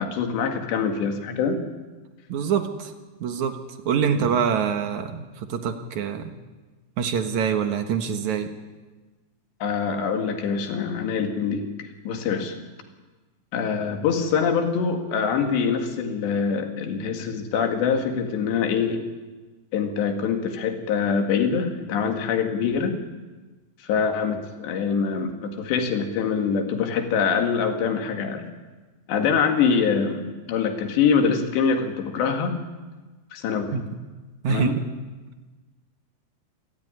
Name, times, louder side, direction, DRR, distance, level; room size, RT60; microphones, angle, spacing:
voice 1, 0.0-1.6 4.2-4.3 9.6-12.6 13.5-19.1 19.7-23.0 23.8-28.4 29.1-32.6 33.3-33.8 34.5-34.8, left 6 dB, 85° left, 5 dB, 4.4 m, -24 dB
voice 2, 2.3-2.9 3.2-3.6 3.9-5.2 5.5-6.3 7.0-8.5 33.7-33.8 34.4-34.7, right 7 dB, 60° right, 7 dB, 2.1 m, -25 dB
27.5 x 13.5 x 9.9 m, 1.2 s
omnidirectional pair, 4.9 m